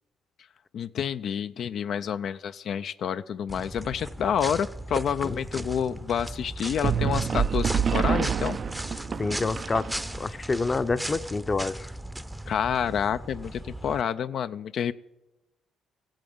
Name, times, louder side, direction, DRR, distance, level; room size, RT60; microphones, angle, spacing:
voice 1, 0.7-8.6 12.5-14.9, left 8 dB, 65° left, 10 dB, 0.4 m, -29 dB
sound 1, 3.5-14.0, right 1 dB, 5° right, 0.6 m, -37 dB
voice 2, 5.2-5.7 9.2-9.9 10.2-11.9, left 3 dB, 30° left, 13 dB, 0.6 m, -28 dB
sound 2, 6.8-10.4, right 7 dB, 50° right, 0.4 m, -27 dB
14.5 x 8.8 x 7.9 m, 0.97 s
cardioid pair, 90°, 0 cm